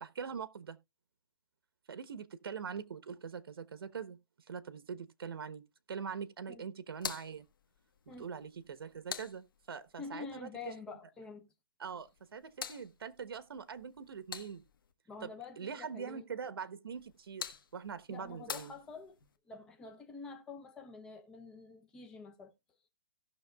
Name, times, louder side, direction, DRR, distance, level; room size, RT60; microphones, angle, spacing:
voice 1, 0.0-0.8 1.9-4.2 4.5-5.6 5.9-7.4 8.1-10.5 11.8-14.6 15.2-18.7, right 6 dB, 80° right, 1.0 m, -43 dB
sound 1, 6.9-10.0 12.0-14.9 16.9-19.4, left 7 dB, 65° left, 1.4 m, -47 dB
voice 2, 10.0-11.5 15.1-16.3 18.1-19.2 19.5-22.5, left 4 dB, 5° left, 0.6 m, -47 dB
17.5 x 6.1 x 2.3 m
hypercardioid pair, 175°, 12 cm